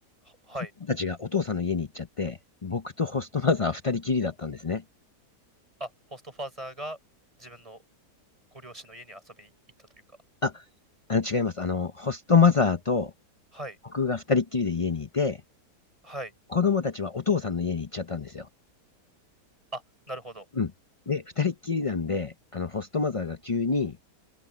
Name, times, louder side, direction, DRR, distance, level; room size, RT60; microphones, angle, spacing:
voice 1, 0.2-0.7 5.8-7.0 7.4-7.8 8.5-9.5 13.5-13.8 16.0-16.3 19.7-20.5, right 1 dB, 20° right, 5.4 m, -39 dB
voice 2, 0.9-4.8 10.4-10.6 11.1-13.1 13.9-15.4 16.5-18.5 20.6-20.7 21.1-24.0, left 5 dB, 55° left, 0.3 m, -26 dB
open air
omnidirectional pair, 1.8 m